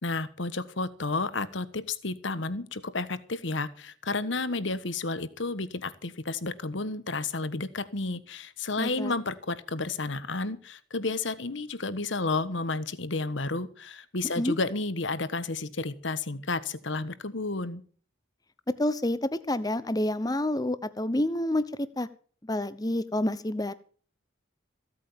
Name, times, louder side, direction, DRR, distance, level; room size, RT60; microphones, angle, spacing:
voice 1, 0.0-17.8, left 3 dB, 70° left, 15 dB, 1.3 m, -31 dB
voice 2, 8.8-9.1 14.4-14.6 18.8-22.1 22.4-23.7, left 1 dB, 20° left, 15 dB, 0.8 m, -28 dB
16.0 x 8.6 x 7.1 m, 0.43 s
head